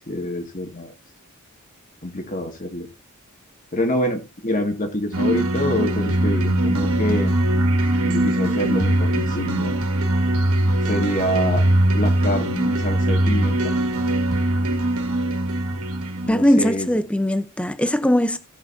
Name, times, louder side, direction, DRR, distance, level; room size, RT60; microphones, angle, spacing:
voice 1, 0.1-0.9 2.0-2.9 3.7-7.3 8.0-9.7 10.9-11.6 11.9-13.6 16.2-16.9, left 1 dB, 35° left, 2.0 m, -26 dB
sound 1, 5.1-16.3, right 1 dB, 75° right, 2.2 m, -21 dB
voice 2, 16.3-18.4, left 1 dB, 5° left, 0.7 m, -20 dB
17.5 x 6.8 x 2.7 m
head